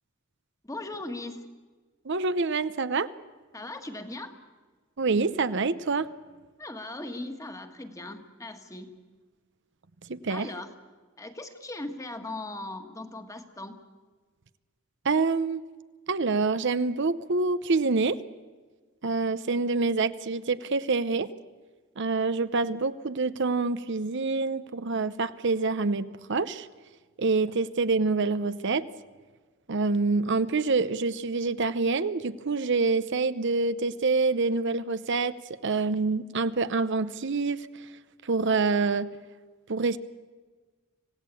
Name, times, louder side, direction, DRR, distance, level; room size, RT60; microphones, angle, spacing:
voice 1, 0.6-1.6 3.5-4.4 6.6-9.0 10.3-10.7 11.2-13.8, left 2 dB, 15° left, 7 dB, 1.7 m, -39 dB
voice 2, 2.0-3.1 5.0-6.1 10.1-10.5 15.0-15.6 16.1-18.2 19.0-21.3 22.0-26.7 27.2-28.9 29.7-37.9 38.2-39.1 39.7-40.0, right 4 dB, 60° right, 13 dB, 0.7 m, -26 dB
26.0 x 17.5 x 8.4 m, 1.4 s
head